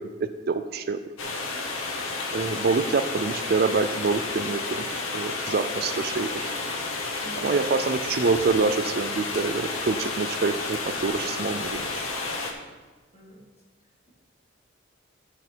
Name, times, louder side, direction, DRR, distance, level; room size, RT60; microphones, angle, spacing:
voice 1, 0.2-1.3 2.3-4.9 5.1-6.3 7.4-12.0, right 4 dB, 50° right, 9 dB, 0.4 m, -26 dB
sound 1, 1.2-12.5, left 3 dB, 85° left, 1.3 m, -31 dB
voice 2, 7.2-7.6 13.1-13.5 13.8-14.1, right 1 dB, 30° left, -5 dB, 2.5 m, -47 dB
12.0 x 5.6 x 4.6 m, 1.3 s
head